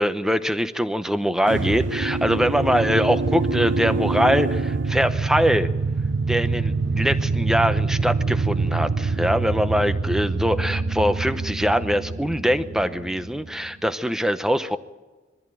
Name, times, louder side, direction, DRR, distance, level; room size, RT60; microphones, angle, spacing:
voice 1, 0.0-5.7 6.3-14.8, equal, 5° right, 10 dB, 0.8 m, -23 dB
sound 1, 1.5-13.7, right 3 dB, 70° right, 0.7 m, -25 dB
22.0 x 14.5 x 9.1 m, 1.2 s
head